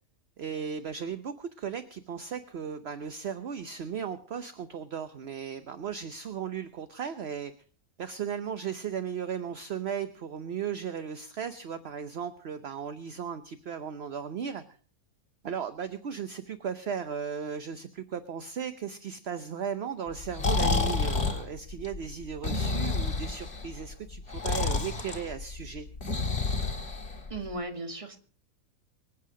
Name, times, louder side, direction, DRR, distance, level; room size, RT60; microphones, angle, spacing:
voice 1, 0.4-7.5 8.0-14.6 15.4-25.9, right 7 dB, 50° right, 1.0 m, -36 dB
Breathing, 20.1-27.5, left 3 dB, 45° left, 2.3 m, -30 dB
voice 2, 27.3-28.2, right 2 dB, 20° right, 1.7 m, -36 dB
24.5 x 8.5 x 4.9 m
omnidirectional pair, 1.5 m